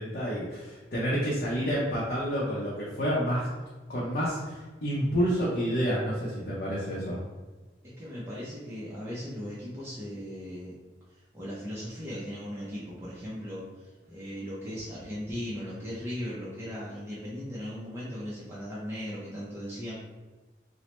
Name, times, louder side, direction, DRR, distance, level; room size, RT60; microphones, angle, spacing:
voice 1, 0.0-3.5 3.9-7.2, equal, 55° left, -7 dB, 0.6 m, -29 dB
voice 2, 7.8-10.7 11.1-19.9, equal, 15° right, -8 dB, 0.5 m, -38 dB
3.0 x 2.0 x 3.0 m, 1.3 s
head